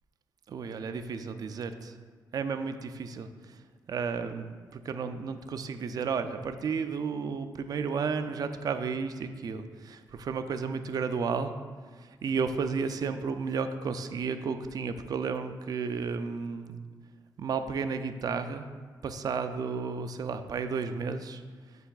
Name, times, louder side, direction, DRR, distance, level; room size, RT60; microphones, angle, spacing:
voice 1, 0.5-1.9 2.3-3.6 3.9-11.5 12.0-16.8 17.4-18.7 19.0-21.4, right 5 dB, 55° right, 9 dB, 0.4 m, -33 dB
8.0 x 5.5 x 2.4 m, 1.5 s
cardioid pair, 95°, 8 cm